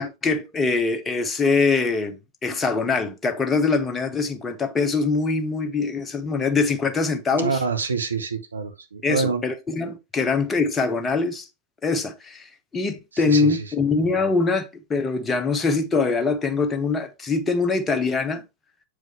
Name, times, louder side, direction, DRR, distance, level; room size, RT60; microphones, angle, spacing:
voice 1, 0.0-7.6 9.0-11.4 11.8-18.4, left 4 dB, 20° left, 1.1 m, -23 dB
voice 2, 7.3-9.4 10.2-10.3 13.2-13.6, right 5 dB, 75° right, 1.2 m, -26 dB
7.6 x 5.0 x 3.4 m
figure-of-eight pair, 90°, 0 cm